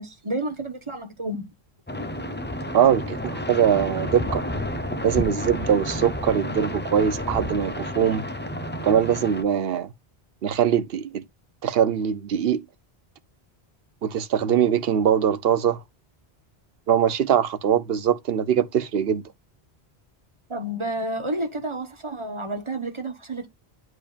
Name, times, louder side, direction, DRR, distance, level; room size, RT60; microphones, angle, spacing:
voice 1, 0.0-1.5 20.5-23.5, right 1 dB, 30° right, 1.3 m, -30 dB
sound 1, 1.9-9.4, left 1 dB, 10° left, 0.7 m, -30 dB
voice 2, 2.7-4.4 5.0-8.2 8.8-9.9 10.4-11.2 11.6-12.6 14.0-15.8 16.9-19.2, right 8 dB, 65° right, 0.9 m, -22 dB
10.0 x 4.7 x 2.5 m
omnidirectional pair, 1.1 m